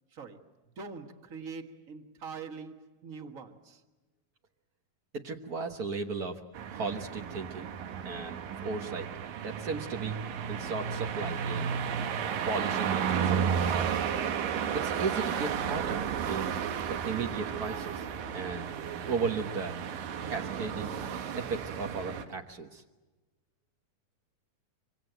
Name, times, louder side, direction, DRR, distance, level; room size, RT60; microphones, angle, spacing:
voice 1, 0.1-3.8, right 5 dB, 45° right, 1.1 m, -44 dB
voice 2, 5.2-6.4 6.7-7.7 8.0-9.1 9.4-10.2 10.5-11.7 12.5-13.7 14.7-16.6 16.9-18.0 18.3-18.7 19.1-19.8 20.3-20.9 21.3-22.8, right 4 dB, 70° right, 0.8 m, -35 dB
sound 1, 6.5-22.2, right 7 dB, 90° right, 3.1 m, -33 dB
26.5 x 25.0 x 8.0 m
omnidirectional pair, 3.8 m